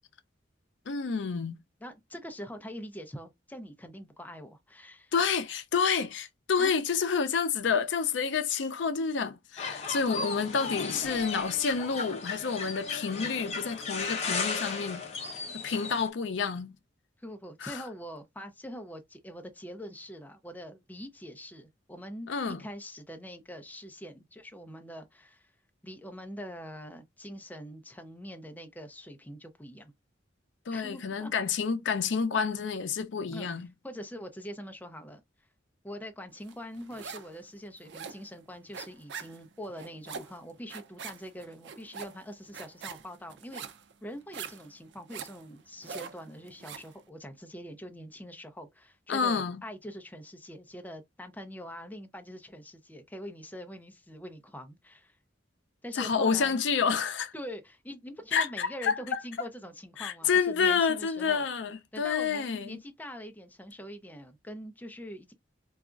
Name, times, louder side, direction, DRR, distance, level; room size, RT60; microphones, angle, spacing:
voice 1, 0.9-1.6 5.1-15.0 15.6-16.7 17.6-17.8 22.3-22.6 30.7-33.7 49.1-49.6 55.9-57.3 58.3-59.2 60.0-62.8, left 6 dB, 70° left, 0.5 m, -29 dB
voice 2, 1.8-5.1 6.6-6.7 17.2-22.3 22.6-25.5 25.8-29.9 30.7-31.3 33.3-33.5 33.8-35.2 35.8-43.6 44.0-55.2 55.8-56.6 57.3-61.4 61.9-65.3, equal, 10° left, 0.5 m, -44 dB
sound 1, 9.6-16.1, left 4 dB, 35° left, 0.8 m, -35 dB
sound 2, 36.5-37.4 37.6-46.9, right 6 dB, 65° right, 0.4 m, -43 dB
4.0 x 2.3 x 2.4 m
head